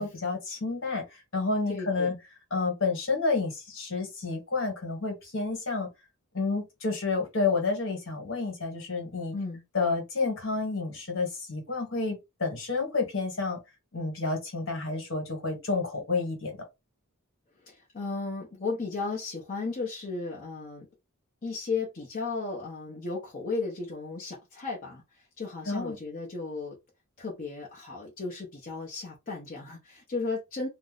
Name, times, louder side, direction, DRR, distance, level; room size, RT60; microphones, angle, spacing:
voice 1, 0.0-2.1 2.5-5.9 6.3-9.3 9.7-13.6 13.9-16.6 25.7-26.0, left 3 dB, 60° left, 1.4 m, -30 dB
voice 2, 1.7-2.2 9.3-9.6 17.7-20.9 21.4-26.8 27.2-30.7, left 4 dB, 40° left, 0.7 m, -35 dB
2.6 x 2.1 x 3.8 m
head